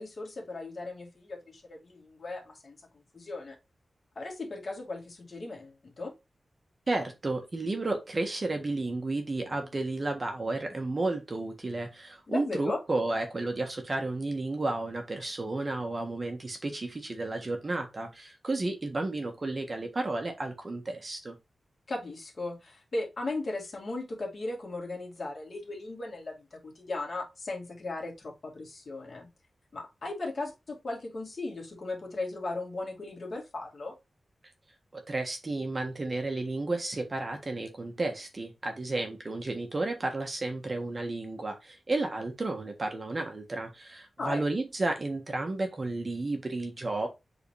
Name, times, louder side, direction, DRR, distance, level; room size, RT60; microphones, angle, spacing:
voice 1, 0.0-2.8 3.1-3.5 4.2-6.1 12.3-12.8 21.9-29.3 29.7-33.9 44.2-44.4, left 2 dB, 50° left, 2.6 m, -37 dB
voice 2, 6.9-21.3 34.9-47.1, right 2 dB, 35° right, 1.5 m, -32 dB
7.9 x 4.1 x 3.3 m
wide cardioid pair, 135°, 0 cm